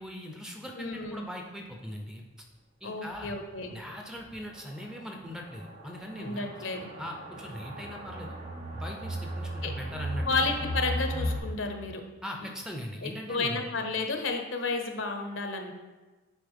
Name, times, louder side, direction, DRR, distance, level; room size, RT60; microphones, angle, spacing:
voice 1, 0.0-2.2 2.8-3.3 3.7-6.5 7.0-8.4 8.7-10.5 12.2-13.6, equal, 5° right, 2 dB, 0.6 m, -40 dB
voice 2, 0.8-1.2 2.8-3.7 6.2-6.9 9.6-9.7 10.3-12.0 13.0-15.7, left 3 dB, 70° left, 4 dB, 0.8 m, -32 dB
sound 1, 3.2-3.3 3.6-3.7 4.2-4.3 5.2-11.4, equal, 60° right, 2.2 m, -35 dB
9.3 x 4.1 x 3.6 m, 1.2 s
head